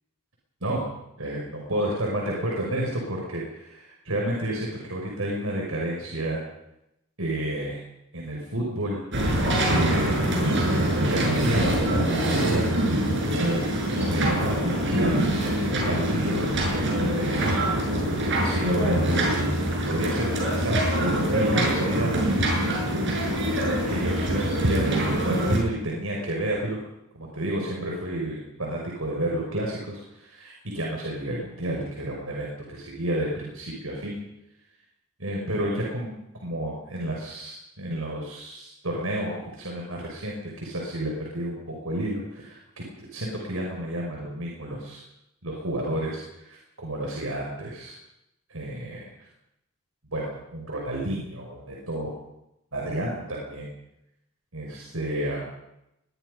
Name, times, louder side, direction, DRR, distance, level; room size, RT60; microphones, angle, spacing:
voice 1, 1.2-6.4 7.2-7.8 8.1-9.0 9.6-10.4 11.0-14.5 14.9-16.5 17.1-17.7 18.4-19.5 19.9-22.3 23.9-26.8 27.1-34.2 35.2-36.1 36.4-45.0 45.4-46.2 46.5-47.9 48.5-49.1 50.1-52.2 52.7-53.7 54.5-55.4, right 1 dB, 85° right, -2 dB, 6.0 m, -30 dB
sound 1, 9.1-25.6, right 1 dB, 60° right, 7.2 m, -24 dB
22.5 x 21.5 x 5.4 m, 0.83 s
head